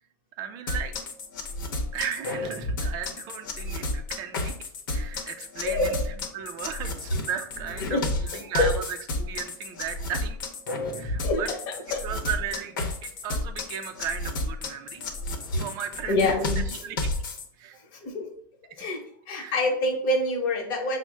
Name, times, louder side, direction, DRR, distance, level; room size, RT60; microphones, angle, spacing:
voice 1, 0.4-0.9 1.9-4.6 4.9-6.0 6.3-8.8 9.2-10.4 10.9-11.5 12.0-15.0 15.6-16.2 16.8-17.0 17.6-17.8 19.3-19.6, right 8 dB, 35° right, 6 dB, 0.4 m, -35 dB
sound 1, 0.7-17.4, left 2 dB, 70° left, 0.9 m, -31 dB
voice 2, 11.2-11.6 11.9-12.0 16.1-16.6 17.9-18.3 18.8-21.0, left 2 dB, 40° left, 1 dB, 1.1 m, -26 dB
6.1 x 2.1 x 3.4 m, 0.64 s
supercardioid pair, 150°, 11 cm